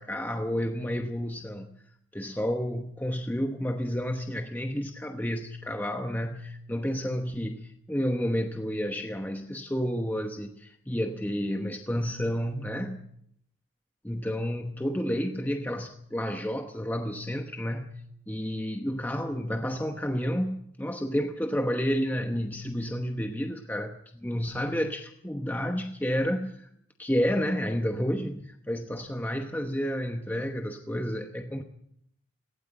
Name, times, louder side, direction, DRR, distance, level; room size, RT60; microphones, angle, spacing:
voice 1, 0.0-1.7 2.1-13.0 14.0-18.0 18.3-26.7 27.0-31.6, equal, 10° left, 4 dB, 1.0 m, -30 dB
18.5 x 16.5 x 8.7 m, 0.72 s
head